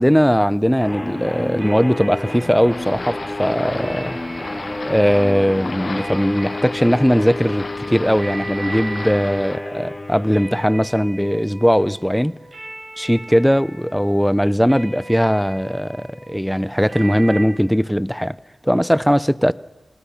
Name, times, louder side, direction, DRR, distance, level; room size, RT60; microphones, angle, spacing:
voice 1, 0.0-4.2 4.9-12.4 13.0-18.4 18.6-19.5, equal, ahead, 0.6 m, -19 dB
sound 1, 0.8-11.0, left 1 dB, 30° left, 4.3 m, -31 dB
sound 2, 1.6-17.4, right 2 dB, 65° right, 7.5 m, -38 dB
sound 3, 2.7-9.6, left 3 dB, 60° left, 0.9 m, -35 dB
25.5 x 19.0 x 5.8 m
cardioid pair, 50°, 0 cm